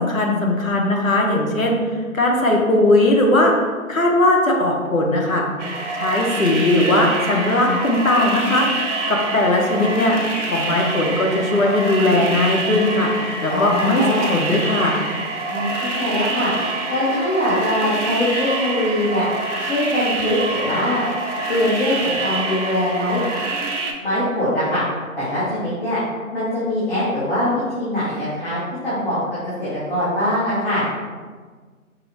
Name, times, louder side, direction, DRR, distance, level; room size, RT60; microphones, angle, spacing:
voice 1, 0.0-1.8 2.1-3.5 3.9-5.5 6.0-8.7 9.1-10.2 10.5-13.1 13.4-14.0 14.3-15.0, left 2 dB, 70° left, 0 dB, 1.0 m, -18 dB
sound 1, 5.6-23.9, right 3 dB, 55° right, 0.8 m, -26 dB
voice 2, 13.5-14.4 15.5-15.7 16.0-16.5 16.9-19.2 19.6-21.0 21.5-23.2 24.0-24.8 25.2-26.0 26.3-29.2 29.6-30.9, left 1 dB, 40° left, -11 dB, 1.4 m, -22 dB
5.4 x 2.1 x 4.0 m, 1.5 s
figure-of-eight pair, 150°, 43 cm